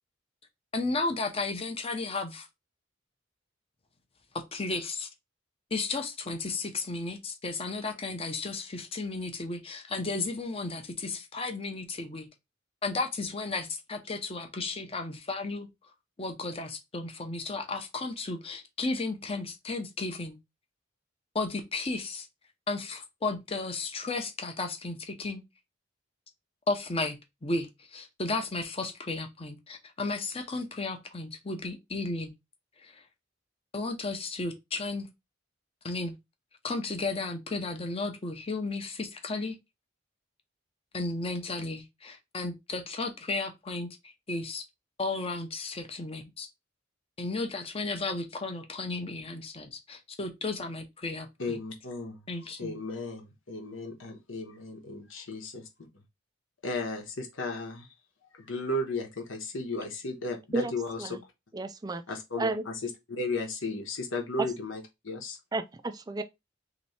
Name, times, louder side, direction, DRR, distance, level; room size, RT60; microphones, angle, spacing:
voice 1, 0.7-2.5 4.3-5.1 5.7-12.3 12.8-15.7 16.2-20.4 21.3-22.3 22.7-25.4 26.7-32.3 32.8-33.0 33.7-35.1 35.8-36.1 36.6-39.6 40.9-44.7 45.0-46.5 47.2-51.6 52.3-52.8, left 3 dB, 30° left, 0.7 m, -34 dB
voice 2, 51.4-52.1 52.6-55.6 56.6-57.9 58.5-61.0 62.1-62.5 63.1-64.8 65.0-65.4, left 2 dB, 80° left, 1.2 m, -34 dB
voice 3, 60.5-61.2 61.5-62.0 62.4-62.7 64.4-64.5 65.5-66.2, right 2 dB, 20° right, 0.4 m, -32 dB
3.2 x 3.0 x 4.1 m
head